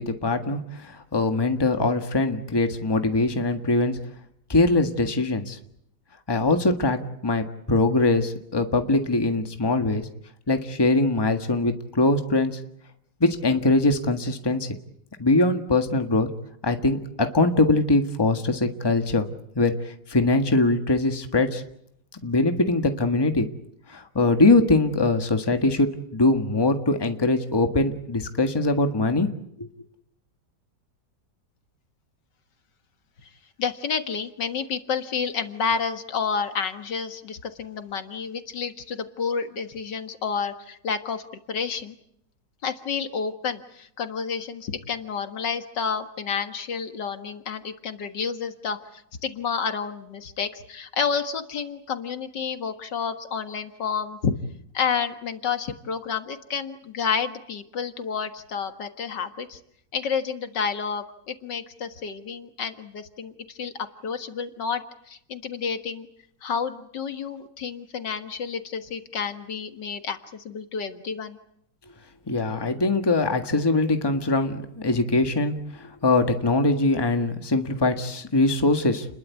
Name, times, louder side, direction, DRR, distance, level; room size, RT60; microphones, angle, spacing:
voice 1, 0.0-4.0 4.5-5.6 6.3-10.1 10.5-12.5 13.2-14.7 15.2-16.3 16.6-19.3 19.5-21.6 22.2-23.5 23.9-29.3 29.6-29.7 72.3-79.1, left 2 dB, 15° left, 6 dB, 1.5 m, -22 dB
voice 2, 33.6-42.0 42.6-54.3 54.7-59.6 59.9-63.7 64.0-64.8 65.1-66.1 66.4-71.4, left 6 dB, 75° left, 8 dB, 2.2 m, -30 dB
30.0 x 21.5 x 8.3 m, 0.75 s
omnidirectional pair, 1.9 m